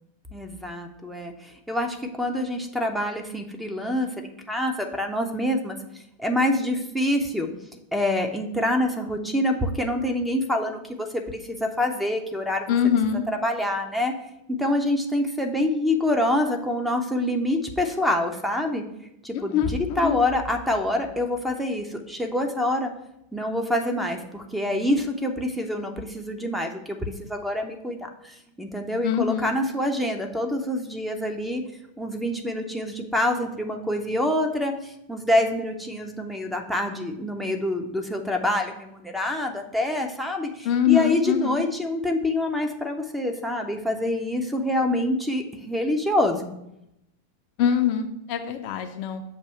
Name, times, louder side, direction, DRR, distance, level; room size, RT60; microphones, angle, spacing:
voice 1, 0.3-1.3 1.7-5.8 6.2-7.5 7.9-12.7 13.4-14.1 14.5-18.8 19.2-19.6 20.0-22.9 23.3-31.6 32.0-46.5, left 1 dB, ahead, 4 dB, 0.6 m, -26 dB
voice 2, 12.7-13.2 19.3-20.2 29.0-29.5 40.6-41.7 47.6-49.2, left 9 dB, 45° left, 6 dB, 0.4 m, -23 dB
6.6 x 2.7 x 5.5 m, 0.83 s
figure-of-eight pair, 90°, 0 cm